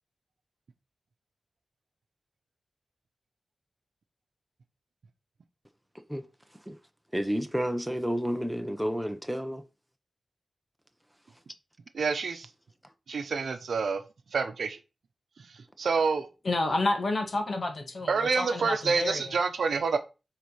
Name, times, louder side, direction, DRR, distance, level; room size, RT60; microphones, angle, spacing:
voice 1, 7.1-9.6, equal, ahead, 0.9 m, -30 dB
voice 2, 11.9-12.5 13.1-14.0 14.3-14.8 15.8-16.3 18.1-20.0, right 5 dB, 85° right, 0.8 m, -27 dB
voice 3, 16.4-19.3, left 2 dB, 50° left, 1.8 m, -30 dB
7.5 x 4.0 x 5.6 m
wide cardioid pair, 130°, 0 cm